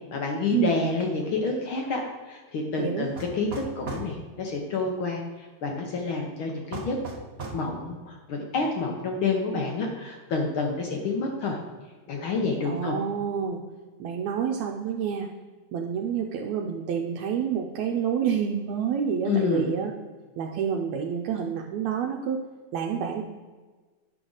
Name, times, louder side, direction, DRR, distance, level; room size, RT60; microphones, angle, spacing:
voice 1, 0.1-2.0 2.3-3.5 3.8-5.2 5.6-7.0 7.5-11.6 12.1-12.9 19.3-19.7, left 4 dB, 70° left, 1 dB, 1.3 m, -28 dB
voice 2, 2.8-3.1 12.7-13.6 14.0-15.3 15.7-19.9 20.4-22.4 22.7-23.2, right 7 dB, 80° right, 1 dB, 1.9 m, -28 dB
sound 1, 3.2-4.1 6.7-7.6, right 3 dB, 55° right, 0.6 m, -36 dB
9.8 x 6.1 x 3.9 m, 1.4 s
omnidirectional pair, 3.3 m